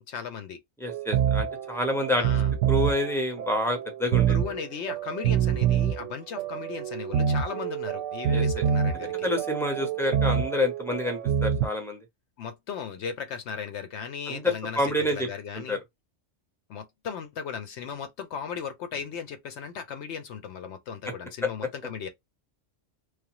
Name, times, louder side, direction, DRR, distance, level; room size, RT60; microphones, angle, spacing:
voice 1, 0.1-0.6 2.2-2.5 4.3-9.3 12.4-15.8 16.7-22.1, left 7 dB, 70° left, 0.8 m, -37 dB
voice 2, 0.8-2.2 2.7-4.4 8.3-8.4 9.2-12.0 14.3-15.3 15.5-15.8 21.0-21.1, left 1 dB, 5° left, 0.6 m, -28 dB
sound 1, 0.9-11.7, right 8 dB, 90° right, 0.9 m, -27 dB
3.2 x 2.0 x 2.9 m
omnidirectional pair, 1.3 m